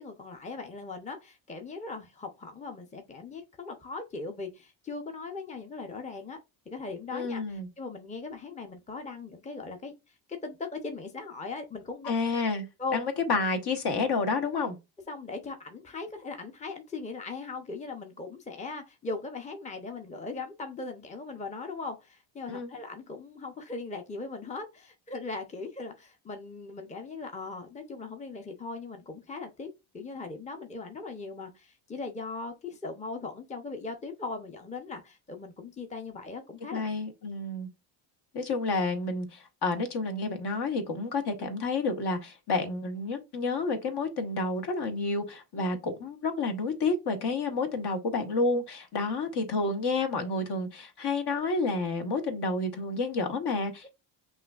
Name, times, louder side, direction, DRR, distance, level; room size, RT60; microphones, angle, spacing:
voice 1, 0.0-6.4 6.7-9.9 10.3-12.1 12.8-13.0 15.1-36.8 45.5-45.6, left 3 dB, 15° left, 0.8 m, -39 dB
voice 2, 7.1-7.7 12.0-12.7 12.9-14.7 22.5-22.7 36.7-37.7 38.3-54.0, left 3 dB, 50° left, 1.3 m, -30 dB
5.5 x 2.7 x 2.4 m
cardioid pair, 90°, 50 cm